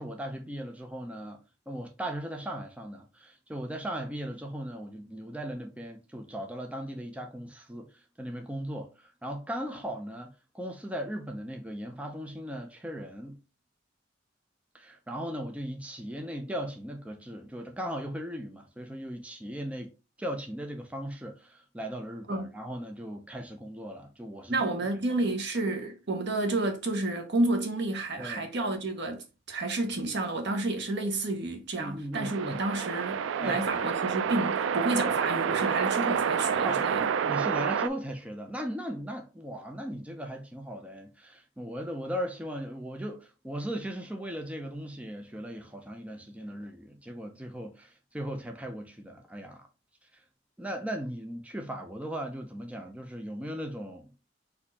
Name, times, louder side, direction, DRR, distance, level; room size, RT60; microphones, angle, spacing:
voice 1, 0.0-1.4 1.7-13.4 14.7-19.9 20.2-24.7 28.2-28.5 31.8-32.6 33.4-33.6 36.6-36.8 37.2-49.7 50.1-50.2 50.6-54.1, equal, 5° right, 0.6 m, -38 dB
voice 2, 24.5-37.1, right 2 dB, 65° right, 1.1 m, -30 dB
Long Noisy Woosh, 32.1-37.9, right 7 dB, 90° right, 0.3 m, -28 dB
4.3 x 2.8 x 4.1 m
head